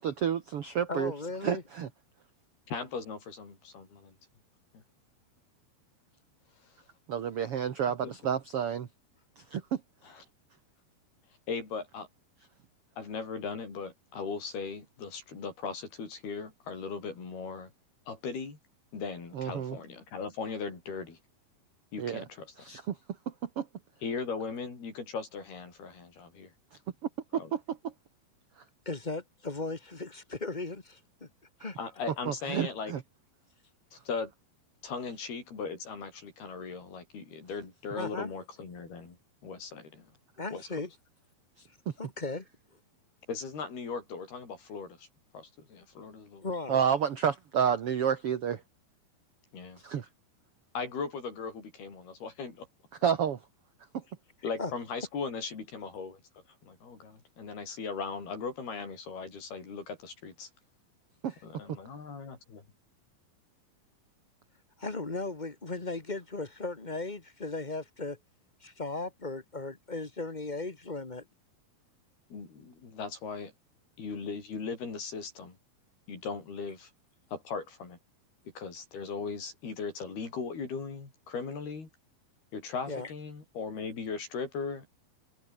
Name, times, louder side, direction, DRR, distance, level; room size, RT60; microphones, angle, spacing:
voice 1, 0.0-1.1 1.4-1.9 7.1-8.9 9.4-9.6 19.3-19.8 22.0-22.2 22.6-23.0 23.6-23.7 27.3-27.6 32.3-33.0 41.6-41.7 46.7-48.6 49.8-50.1 53.0-53.4 53.9-54.0 61.2-61.3, right 8 dB, 50° right, 1.9 m, -30 dB
voice 2, 0.9-1.6 28.8-31.3 31.6-31.8 38.0-38.3 40.4-40.9 42.0-42.5 46.4-46.8 54.6-54.7 64.8-68.2 68.6-71.2 82.9-83.1, left 3 dB, 35° left, 0.7 m, -36 dB
voice 3, 2.7-4.2 4.7-4.8 8.0-8.1 10.0-10.2 11.5-12.1 13.0-17.7 18.1-18.6 18.9-21.2 21.9-22.5 24.0-26.5 27.3-27.5 31.8-32.9 33.9-34.3 34.8-39.2 39.4-40.1 40.5-40.7 43.3-45.1 45.3-46.5 49.5-49.8 50.7-52.7 54.4-60.5 61.4-62.6 72.3-73.5 74.0-75.6 76.1-76.9 77.3-78.0 78.6-81.9 82.5-84.9, left 5 dB, 90° left, 8.2 m, -38 dB
omnidirectional pair, 4.4 m